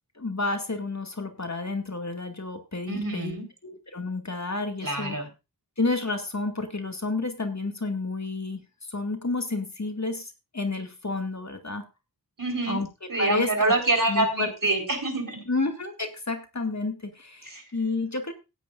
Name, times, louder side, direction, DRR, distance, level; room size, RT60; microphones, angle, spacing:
voice 1, 0.2-3.4 3.6-5.2 5.8-8.6 8.9-11.8 12.7-13.7 14.1-14.5 15.5-18.3, left 3 dB, 45° left, 5 dB, 2.3 m, -30 dB
voice 2, 2.9-3.4 4.8-5.3 12.4-12.8 13.1-15.4 17.4-17.6, right 2 dB, 60° right, 3 dB, 4.5 m, -26 dB
16.5 x 10.5 x 2.6 m, 0.27 s
wide cardioid pair, 45°, 37 cm